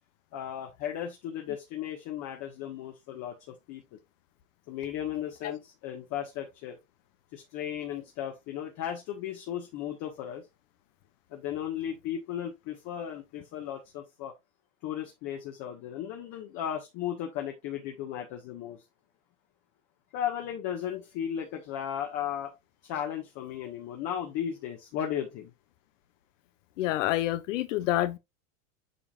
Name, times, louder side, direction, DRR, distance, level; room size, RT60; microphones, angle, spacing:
voice 1, 0.3-4.0 4.7-6.8 7.3-10.4 11.3-14.3 14.8-18.8 20.1-22.5 22.8-25.5, left 10 dB, 50° left, 1.7 m, -35 dB
voice 2, 26.8-28.2, left 14 dB, 70° left, 1.1 m, -27 dB
8.5 x 5.2 x 2.5 m
supercardioid pair, 125°, 39 cm